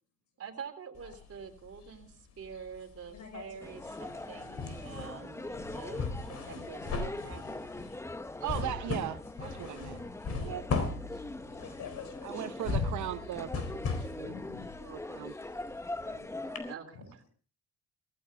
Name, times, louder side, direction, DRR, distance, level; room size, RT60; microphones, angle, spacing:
voice 1, 0.4-7.7 14.0-14.1 16.7-17.2, right 6 dB, 50° right, 3.5 m, -47 dB
sound 1, 1.0-2.1 2.4-16.2 16.6-16.7, left 4 dB, 55° left, 4.1 m, -38 dB
voice 2, 3.1-3.6 4.1-4.8 5.5-5.9 10.2-10.6 11.1-12.5 14.2-15.1 16.9-17.1, left 6 dB, 75° left, 5.6 m, -50 dB
sound 2, 3.6-16.8, left 2 dB, 10° left, 0.7 m, -42 dB
voice 3, 8.4-10.0 10.4-10.6 12.2-14.3 14.8-15.3 16.1-16.6, right 13 dB, 75° right, 0.9 m, -39 dB
18.0 x 15.5 x 3.7 m
cardioid pair, 90°, 30 cm